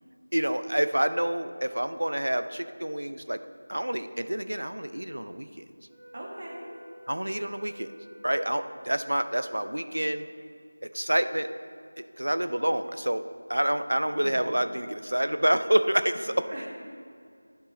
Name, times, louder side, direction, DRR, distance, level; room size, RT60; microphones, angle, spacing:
voice 1, 0.3-3.4 3.7-5.6 7.1-7.9 8.2-10.3 10.9-11.5 12.2-16.5, right 1 dB, 75° right, 11 dB, 0.4 m, -28 dB
Wind instrument woodwind instrument, 5.9-10.3, right 1 dB, 5° right, 1.9 m, -51 dB
voice 2, 6.1-6.7 14.2-14.7 16.2-16.7, right 1 dB, 40° right, -3 dB, 1.5 m, -41 dB
10.5 x 4.6 x 4.1 m, 2.3 s
figure-of-eight pair, 170°, 0 cm